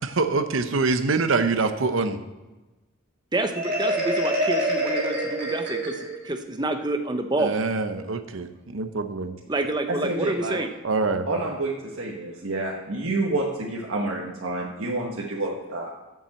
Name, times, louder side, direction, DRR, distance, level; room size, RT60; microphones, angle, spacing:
voice 1, 0.0-2.2 7.4-9.3 10.8-11.3, right 3 dB, 70° right, 9 dB, 0.8 m, -25 dB
voice 2, 3.3-7.5 9.5-10.7, right 2 dB, 20° right, 6 dB, 0.8 m, -28 dB
Marimba xylophone, 3.5-6.3, equal, 45° right, 3.3 m, -26 dB
voice 3, 9.9-10.6 11.3-15.9, right 2 dB, 85° right, -3 dB, 1.4 m, -28 dB
8.8 x 7.2 x 7.6 m, 1.1 s
head